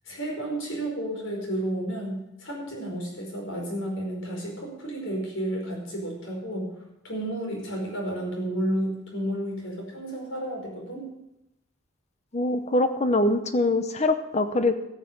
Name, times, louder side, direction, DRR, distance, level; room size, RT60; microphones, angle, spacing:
voice 1, 0.1-6.7 7.0-11.1, right 1 dB, 90° left, -1 dB, 5.2 m, -31 dB
voice 2, 12.3-14.7, left 2 dB, 35° left, 9 dB, 0.7 m, -23 dB
14.0 x 7.5 x 7.4 m, 0.88 s
head